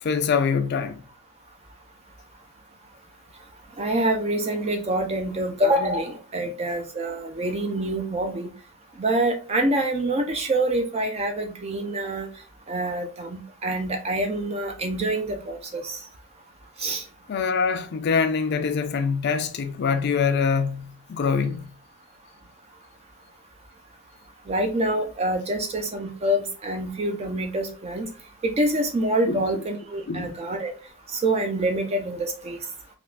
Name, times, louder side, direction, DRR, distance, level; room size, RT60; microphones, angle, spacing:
voice 1, 0.0-1.0 17.3-21.7 29.3-29.6 30.1-30.4, left 5 dB, 50° left, 0.4 m, -24 dB
voice 2, 3.8-8.5 9.0-12.3 12.7-16.0 16.8-17.0 24.5-28.1 28.4-30.7 31.1-32.6, right 1 dB, 30° right, 0.4 m, -26 dB
3.4 x 2.4 x 2.3 m
head